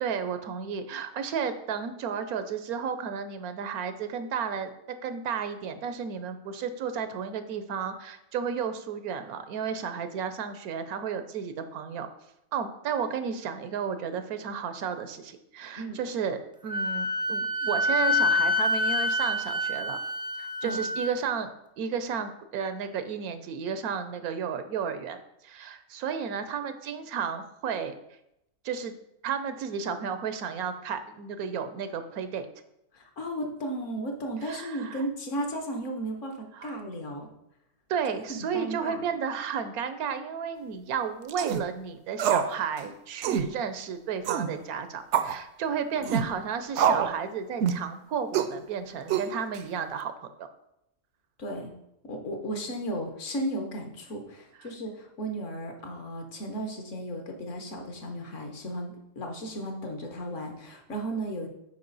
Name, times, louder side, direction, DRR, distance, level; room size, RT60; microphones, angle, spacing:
voice 1, 0.0-4.7 5.0-12.1 12.5-20.0 20.4-21.5 21.8-25.2 25.4-28.0 28.6-28.9 29.2-32.5 34.4-35.0 36.5-36.7 37.9-50.5, right 7 dB, 85° right, 10 dB, 1.2 m, -33 dB
Wind instrument woodwind instrument, 16.7-21.1, left 2 dB, 5° right, 0.5 m, -27 dB
voice 2, 32.9-37.3 38.3-39.1 46.0-46.2 51.4-51.7 52.0-61.5, right 1 dB, 60° left, 3 dB, 1.4 m, -35 dB
sound 1, 41.3-41.6 42.2-42.5 42.8-42.9 43.2-43.5 44.2-44.5 45.1-45.4 46.0-46.3 46.8-47.1 47.6-47.9 48.3-48.5 49.1-49.6, right 8 dB, 65° right, 0.7 m, -25 dB
8.4 x 5.0 x 4.0 m, 0.82 s
omnidirectional pair, 1.5 m